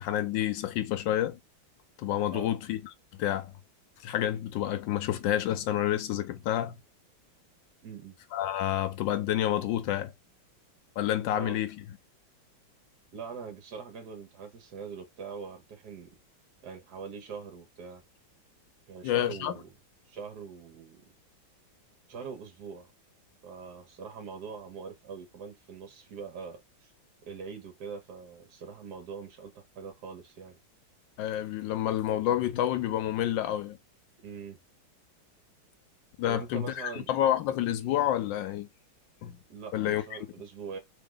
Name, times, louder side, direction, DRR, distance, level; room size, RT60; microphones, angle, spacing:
voice 1, 0.0-1.4 2.0-3.5 4.0-6.8 8.3-10.1 11.0-11.8 19.0-19.5 31.2-33.8 36.2-38.7 39.2-39.4 39.7-40.2, left 12 dB, 75° left, 1.2 m, -29 dB
voice 2, 7.8-8.1 11.3-11.6 13.1-16.1 16.6-18.0 18.9-19.7 20.1-21.0 22.1-22.9 23.4-26.9 27.2-30.6 34.2-34.6 36.2-37.1 39.5-40.8, right 6 dB, 55° right, 1.6 m, -43 dB
3.8 x 3.4 x 3.8 m
omnidirectional pair, 2.2 m